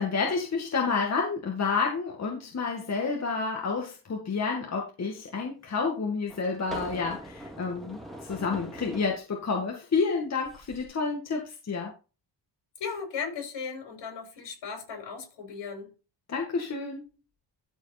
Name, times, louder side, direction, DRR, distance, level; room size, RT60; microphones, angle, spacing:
voice 1, 0.0-11.9 16.3-17.0, left 4 dB, 35° left, 2.1 m, -29 dB
sound 1, 5.2-5.3 6.3-9.1 10.4-10.8, equal, ahead, 2.4 m, -42 dB
voice 2, 12.8-15.9, left 6 dB, 65° left, 5.9 m, -36 dB
13.5 x 4.8 x 4.3 m
cardioid pair, 125°, 44 cm